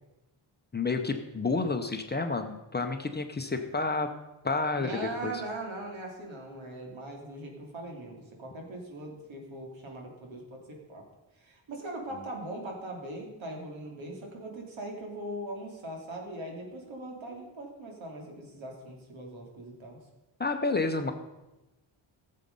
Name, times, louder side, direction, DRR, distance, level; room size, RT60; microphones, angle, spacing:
voice 1, 0.7-4.1 4.4-4.9 5.2-5.3 20.4-21.1, left 3 dB, 20° left, 5 dB, 0.7 m, -30 dB
voice 2, 4.8-11.1 11.4-20.0, right 1 dB, 75° right, 1 dB, 3.1 m, -40 dB
16.5 x 7.5 x 5.3 m, 1.0 s
wide cardioid pair, 165°, 47 cm